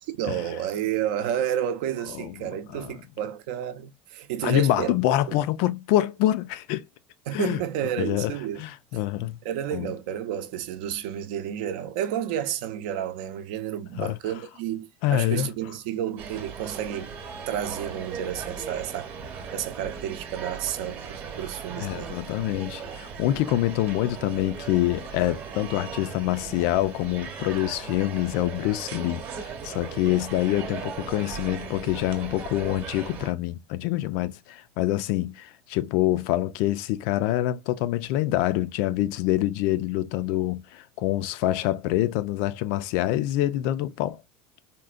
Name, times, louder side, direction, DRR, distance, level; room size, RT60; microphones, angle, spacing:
voice 1, 0.2-4.9 5.3-5.4 7.3-8.6 9.4-17.1 17.5-19.2 19.5-22.2, right 10 dB, 75° right, 0.6 m, -31 dB
voice 2, 2.1-2.9 4.4-6.9 7.3-7.6 8.0-9.4 9.7-9.9 14.0-14.2 15.0-15.5 21.8-29.2 29.6-44.2, left 14 dB, 60° left, 0.3 m, -26 dB
sound 1, 16.2-33.3, right 6 dB, 35° right, 0.8 m, -38 dB
3.6 x 2.1 x 2.4 m
cardioid pair, 165°, 5 cm